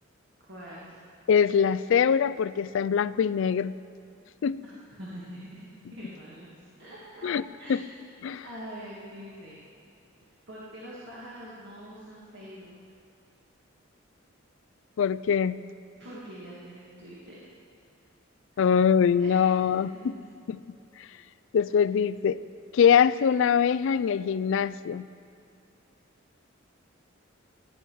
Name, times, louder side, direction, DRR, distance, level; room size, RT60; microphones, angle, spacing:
voice 1, 0.5-1.0 4.6-8.1 8.4-9.6 10.2-12.8 15.9-17.4 18.5-18.7 19.2-20.1 21.6-21.8, equal, 60° right, -6 dB, 2.0 m, -45 dB
voice 2, 1.3-3.7 4.4-4.6 7.2-7.4 7.7-7.8 8.2-8.4 15.0-15.6 18.6-19.9 20.5-20.6 21.5-22.4 22.7-25.0, left 7 dB, 65° left, 17 dB, 0.3 m, -23 dB
17.0 x 9.4 x 4.6 m, 2.4 s
head